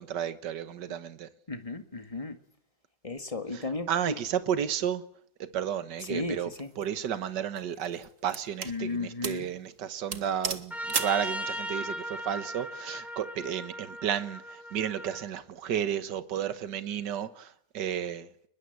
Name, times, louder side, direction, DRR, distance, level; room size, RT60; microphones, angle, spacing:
voice 1, 0.0-1.3 3.5-3.6 3.9-5.0 5.4-6.5 6.8-18.3, right 9 dB, 70° right, 1.9 m, -32 dB
voice 2, 1.5-2.4 3.0-4.2 6.1-6.7 8.7-9.5, left 3 dB, 20° left, 1.9 m, -34 dB
sound 1, 6.5-6.8 7.6-8.8 9.2-9.5 9.8-9.9 10.1-11.2, right 5 dB, 45° right, 1.9 m, -34 dB
Trumpet, 10.7-15.3, equal, ahead, 3.8 m, -37 dB
22.5 x 21.0 x 7.9 m
omnidirectional pair, 2.0 m